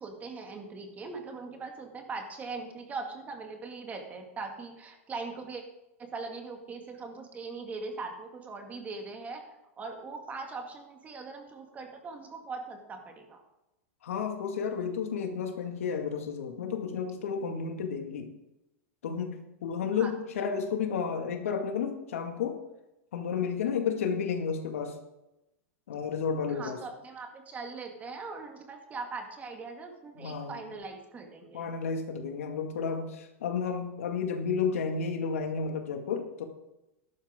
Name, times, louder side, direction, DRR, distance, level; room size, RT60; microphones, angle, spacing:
voice 1, 0.0-5.6 6.0-9.4 9.8-13.4 19.9-20.1 26.5-31.7, right 4 dB, 20° right, 3 dB, 2.1 m, -40 dB
voice 2, 14.0-18.3 19.0-22.6 23.1-25.0 25.9-26.8 30.2-30.6 31.5-36.4, left 6 dB, 80° left, 4 dB, 2.1 m, -32 dB
13.0 x 12.0 x 3.7 m, 0.94 s
hypercardioid pair, 130°, 7 cm